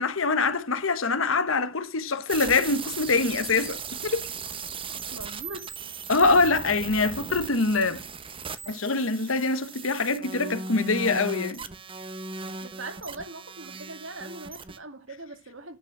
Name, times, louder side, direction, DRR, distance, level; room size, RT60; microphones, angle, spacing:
voice 1, 0.0-4.2 6.1-8.0 8.7-11.6, left 3 dB, 80° left, 1.3 m, -24 dB
sound 1, 2.3-14.8, right 4 dB, 25° right, 0.9 m, -37 dB
voice 2, 4.9-5.7 12.6-15.8, right 2 dB, 70° right, 2.3 m, -41 dB
9.9 x 7.2 x 6.1 m
head